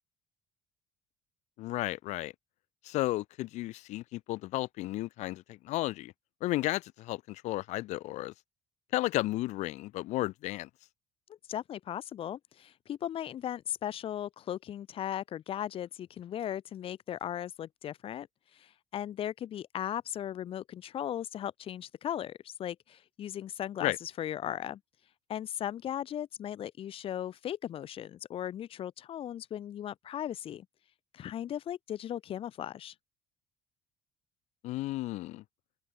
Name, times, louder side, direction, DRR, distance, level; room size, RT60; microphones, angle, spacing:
voice 1, 1.6-2.3 2.8-6.1 6.4-8.3 8.9-10.7 23.8-24.0 34.6-35.4, left 17 dB, 70° left, 4.6 m, -33 dB
voice 2, 11.5-18.3 18.5-24.8 25.3-30.7 31.1-32.9, left 11 dB, 50° left, 3.9 m, -37 dB
open air
cardioid pair, 120°, 12 cm